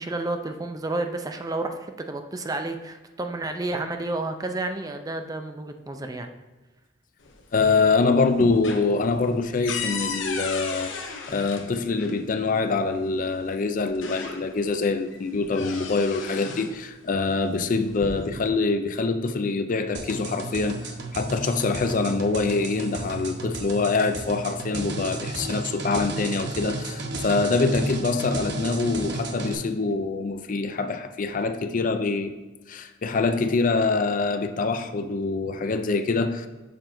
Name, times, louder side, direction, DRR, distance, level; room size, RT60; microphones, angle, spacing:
voice 1, 0.0-6.3, right 2 dB, 20° right, 0.4 m, -31 dB
sound 1, 7.2-7.9 8.2-12.2 13.3-13.4 13.8-14.7 15.1-16.8 17.7-18.5, left 4 dB, 85° left, 1.0 m, -35 dB
voice 2, 7.5-32.3 32.7-36.5, left 3 dB, 45° left, 0.4 m, -25 dB
sound 2, 19.9-29.5, right 2 dB, 60° right, 0.9 m, -33 dB
6.9 x 3.7 x 5.8 m
head